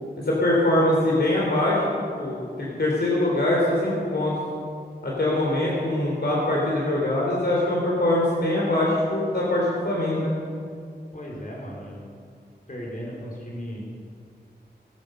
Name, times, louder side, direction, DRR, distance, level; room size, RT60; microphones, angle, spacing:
voice 1, 0.2-4.3 5.0-10.3, left 1 dB, 70° left, -4 dB, 3.3 m, -23 dB
voice 2, 11.1-12.0 12.7-13.8, equal, 50° left, -3 dB, 4.2 m, -36 dB
18.5 x 9.7 x 6.6 m, 2.2 s
wide cardioid pair, 80°, 18 cm